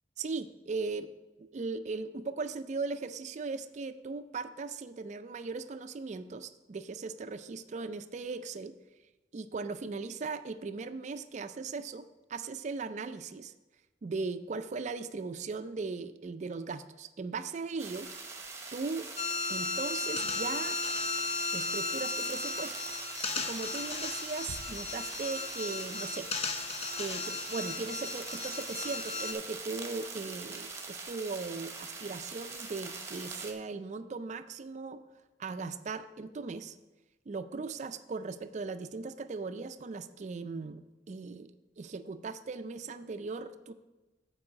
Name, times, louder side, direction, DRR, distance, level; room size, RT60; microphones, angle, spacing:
voice 1, 0.2-1.1 1.4-8.7 9.3-13.5 14.0-18.1 18.7-19.1 19.5-20.8 21.5-22.7 23.3-26.3 27.0-35.0 35.4-36.8 37.3-43.7, right 4 dB, 40° right, 11 dB, 0.4 m, -38 dB
sound 1, 17.8-33.5, right 4 dB, 15° right, 0.9 m, -43 dB
sound 2, 19.2-29.3, left 3 dB, 35° left, 0.8 m, -35 dB
Bass drum, 24.5-25.9, left 2 dB, 65° left, 0.5 m, -50 dB
8.6 x 4.7 x 6.3 m, 1.1 s
head